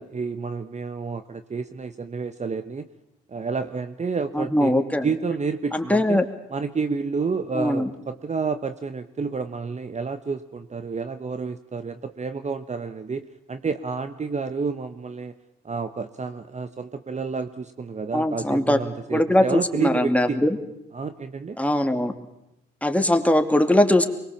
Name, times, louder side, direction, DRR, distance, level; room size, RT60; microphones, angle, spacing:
voice 1, 0.0-2.9 3.3-6.2 6.5-15.3 15.6-20.4 20.9-21.6, right 5 dB, 35° right, 10 dB, 1.1 m, -30 dB
voice 2, 4.3-5.1 5.7-6.3 7.5-7.9 18.1-18.8 19.1-20.6 21.6-22.1 22.8-24.1, left 1 dB, 5° left, 6 dB, 2.6 m, -21 dB
24.0 x 21.5 x 7.2 m, 0.87 s
supercardioid pair, 60°, 21 cm